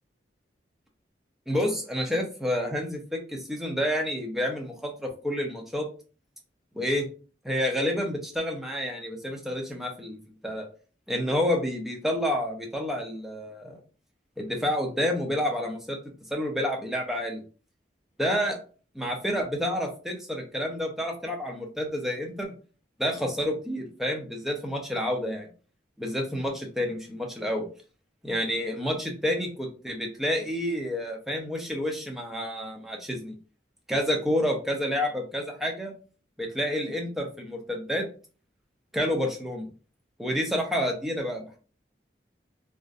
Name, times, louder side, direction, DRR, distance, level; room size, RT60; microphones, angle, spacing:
voice 1, 1.5-5.9 6.7-7.1 7.4-10.2 10.4-10.7 11.1-13.8 14.4-16.0 16.3-17.4 18.2-18.6 18.9-22.5 23.0-25.5 26.0-27.6 28.2-33.4 33.9-35.9 36.4-38.1 38.9-39.6 40.2-41.6, equal, ahead, 0 dB, 0.4 m, -29 dB
2.5 x 2.0 x 2.4 m, 0.37 s
head